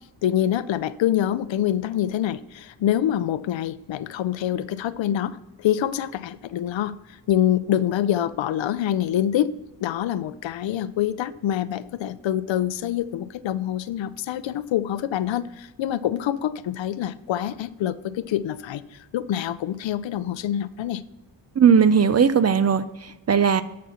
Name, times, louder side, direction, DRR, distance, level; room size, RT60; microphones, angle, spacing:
voice 1, 0.2-9.5 9.8-21.0, left 11 dB, 70° left, 16 dB, 0.6 m, -26 dB
voice 2, 21.6-23.6, right 7 dB, 35° right, 14 dB, 0.4 m, -18 dB
11.0 x 4.3 x 5.6 m, 1.0 s
cardioid pair, 85°, 47 cm